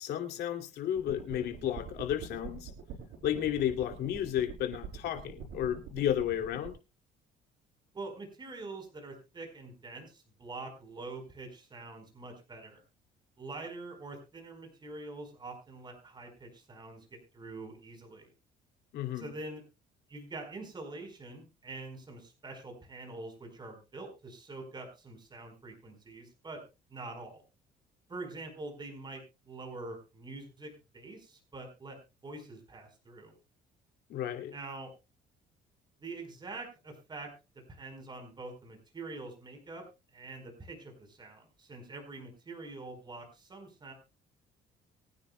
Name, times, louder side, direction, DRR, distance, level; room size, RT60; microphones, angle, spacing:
voice 1, 0.0-2.7 3.2-6.7 18.9-19.3 34.1-34.5, left 10 dB, 75° left, 5 dB, 2.8 m, -32 dB
sound 1, 1.0-6.7, right 7 dB, 85° right, 4.8 m, -45 dB
voice 2, 7.9-12.8 13.4-18.3 19.1-19.6 20.1-26.6 26.9-27.4 28.1-33.3 34.5-34.9 36.0-37.3 37.7-39.9 40.1-43.9, right 3 dB, 25° right, 4 dB, 4.7 m, -45 dB
24.0 x 9.7 x 2.3 m, 0.27 s
cardioid pair, 110°, 17 cm